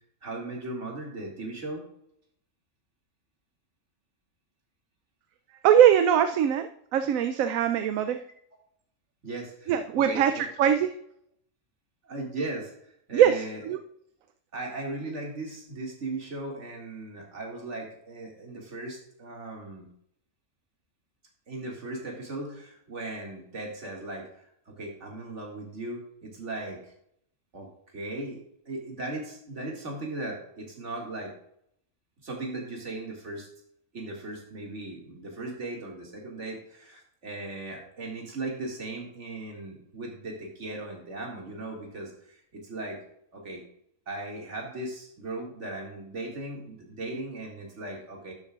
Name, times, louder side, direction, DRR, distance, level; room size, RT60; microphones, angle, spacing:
voice 1, 0.2-1.8 9.2-10.4 12.0-12.7 13.1-13.6 14.5-19.9 21.5-24.3 24.7-26.8 27.5-27.7 27.9-31.3 32.2-33.5 33.9-43.0 43.3-43.6 44.1-48.3, right 2 dB, 60° right, -1 dB, 2.5 m, -37 dB
voice 2, 5.6-8.2 9.7-10.9 13.1-13.8, right 9 dB, 80° right, 9 dB, 1.0 m, -22 dB
11.5 x 7.6 x 2.4 m, 0.71 s
omnidirectional pair, 1.4 m